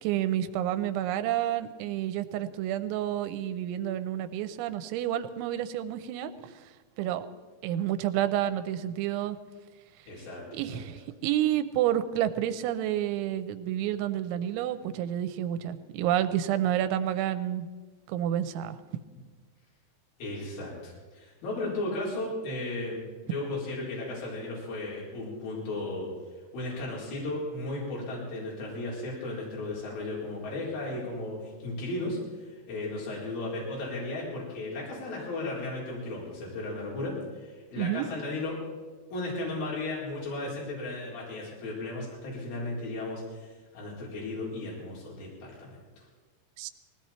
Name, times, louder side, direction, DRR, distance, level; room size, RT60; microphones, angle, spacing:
voice 1, 0.0-6.7 7.0-7.3 7.6-9.4 10.5-17.7 18.1-18.8 37.8-38.1 46.6-46.7, right 11 dB, 80° right, 10 dB, 3.0 m, -29 dB
voice 2, 10.1-10.4 10.7-10.8 20.2-26.1 26.5-38.6 39.1-46.1, left 2 dB, 55° left, -5 dB, 5.8 m, -35 dB
19.5 x 16.5 x 4.4 m, 1.4 s
omnidirectional pair, 5.5 m